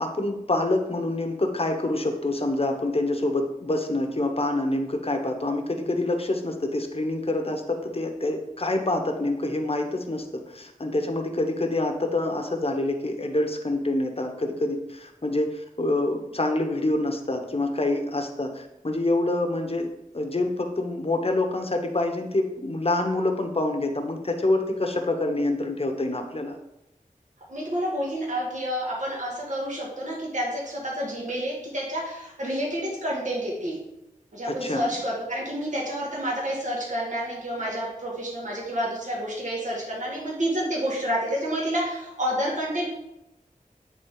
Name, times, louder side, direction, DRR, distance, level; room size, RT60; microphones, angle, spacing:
voice 1, 0.0-19.9 20.1-26.6 34.4-34.9, left 2 dB, 40° left, 4 dB, 1.1 m, -26 dB
voice 2, 27.5-33.8 34.3-42.8, equal, 55° right, -4 dB, 1.9 m, -29 dB
9.0 x 3.8 x 4.9 m, 0.89 s
wide cardioid pair, 65°, 15 cm